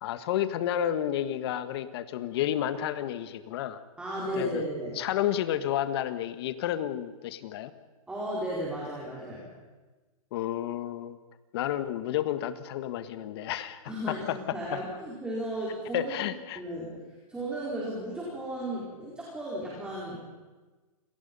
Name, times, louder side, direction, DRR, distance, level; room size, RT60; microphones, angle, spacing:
voice 1, 0.0-3.8 4.4-4.6 5.0-7.7 10.3-11.2 11.5-14.8 15.9-16.6, left 11 dB, 45° left, 11 dB, 1.6 m, -31 dB
voice 2, 4.0-5.0 8.1-9.4 13.9-20.3, equal, 5° right, -6 dB, 4.8 m, -35 dB
28.5 x 20.0 x 5.5 m, 1.3 s
hypercardioid pair, 155°, 19 cm